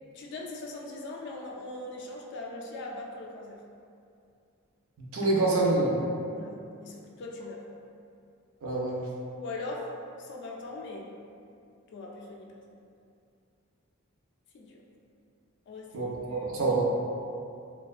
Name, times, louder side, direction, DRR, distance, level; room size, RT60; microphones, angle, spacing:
voice 1, 0.1-3.6 6.3-7.6 9.4-9.9 10.2-11.1 11.9-12.6 14.5-14.8 15.7-16.6, left 2 dB, 55° left, 0 dB, 0.3 m, -40 dB
voice 2, 5.0-6.0 8.6-9.0 15.9-16.8, right 2 dB, 70° right, -3 dB, 0.4 m, -26 dB
2.4 x 2.2 x 2.3 m, 2.5 s
head